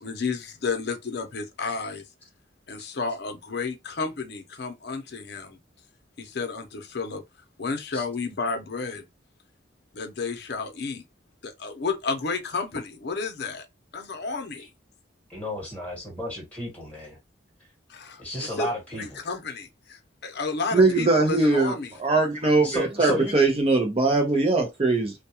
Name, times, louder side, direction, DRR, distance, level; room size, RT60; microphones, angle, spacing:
voice 1, 0.0-2.0 2.7-5.6 6.2-7.2 7.6-9.0 9.9-11.0 11.4-13.7 13.9-14.7 17.9-18.2 18.6-18.7 18.9-21.9, left 4 dB, 60° left, 0.6 m, -31 dB
voice 2, 15.3-17.2 18.2-19.2 22.6-23.3, left 1 dB, 10° left, 1.3 m, -32 dB
voice 3, 20.7-25.1, right 3 dB, 30° right, 0.6 m, -21 dB
2.2 x 2.2 x 2.8 m
head